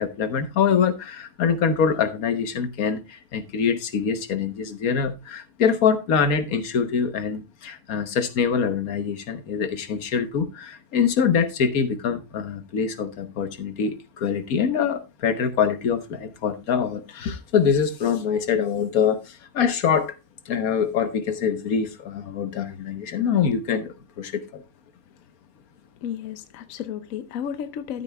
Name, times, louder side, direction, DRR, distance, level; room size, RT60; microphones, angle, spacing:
voice 1, 0.0-20.1 20.5-24.6, left 6 dB, 90° left, 1.5 m, -24 dB
voice 2, 26.0-28.0, left 9 dB, 75° left, 1.1 m, -33 dB
13.0 x 8.3 x 2.3 m
omnidirectional pair, 1.5 m